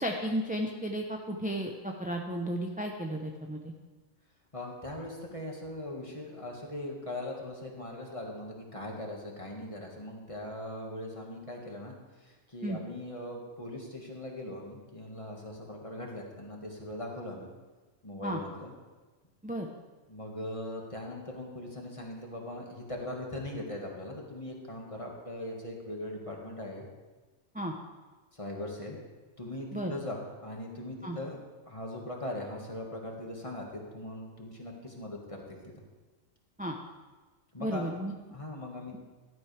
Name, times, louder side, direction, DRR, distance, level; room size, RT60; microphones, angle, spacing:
voice 1, 0.0-3.7 12.6-12.8 18.2-18.4 19.4-19.7 27.5-27.7 29.7-29.9 31.0-31.2 36.6-36.8 37.6-38.1, right 1 dB, 10° right, 1 dB, 0.7 m, -33 dB
voice 2, 4.5-17.5 18.0-18.7 20.1-26.9 28.3-29.0 29.4-31.4 31.7-35.7 37.5-38.0 38.3-39.0, left 1 dB, 25° left, -1 dB, 1.9 m, -40 dB
15.5 x 12.0 x 3.4 m, 1.3 s
omnidirectional pair, 1.3 m